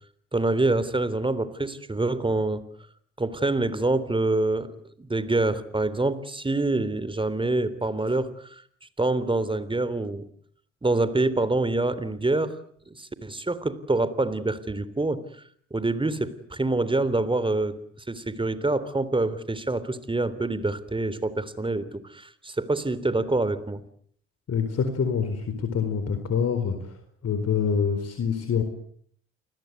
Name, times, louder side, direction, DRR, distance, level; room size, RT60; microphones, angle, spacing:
voice 1, 0.3-2.6 3.2-4.7 5.0-8.6 9.0-10.2 10.8-12.6 12.9-15.2 15.7-17.8 18.1-23.8, right 2 dB, 15° right, 16 dB, 3.5 m, -26 dB
voice 2, 24.5-28.6, left 6 dB, 50° left, 8 dB, 4.4 m, -26 dB
29.0 x 20.5 x 9.5 m, 0.63 s
hypercardioid pair, 60°, 31 cm